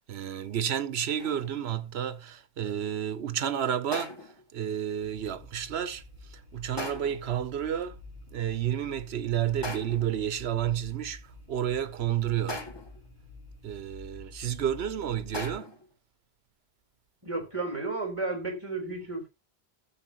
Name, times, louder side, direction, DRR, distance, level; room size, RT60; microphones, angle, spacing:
voice 1, 0.0-6.0 6.3-8.0 8.3-12.6 13.6-15.8, right 10 dB, 85° right, 1.1 m, -31 dB
sound 1, 1.2-1.6 3.9-4.5 6.8-7.3 9.6-10.2 12.5-13.1 15.3-15.9, left 2 dB, 25° left, 1.3 m, -38 dB
sound 2, 5.0-15.5, left 3 dB, 45° left, 4.5 m, -49 dB
voice 2, 17.2-19.3, right 3 dB, 30° right, 3.8 m, -33 dB
14.0 x 7.4 x 2.9 m
omnidirectional pair, 1.0 m